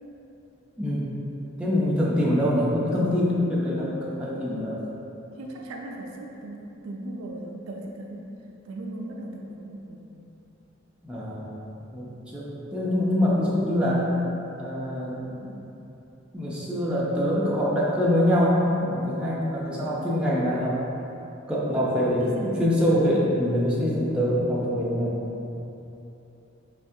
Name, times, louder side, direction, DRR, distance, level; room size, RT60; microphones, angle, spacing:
voice 1, 0.8-1.1 1.6-4.8 11.0-11.6 11.9-14.1 14.6-15.5 16.3-20.8 21.5-25.4, equal, 5° right, -7 dB, 0.4 m, -24 dB
voice 2, 5.3-8.3 8.6-10.1 22.2-22.6, right 1 dB, 85° right, 0 dB, 0.4 m, -38 dB
4.3 x 2.3 x 2.7 m, 3.0 s
head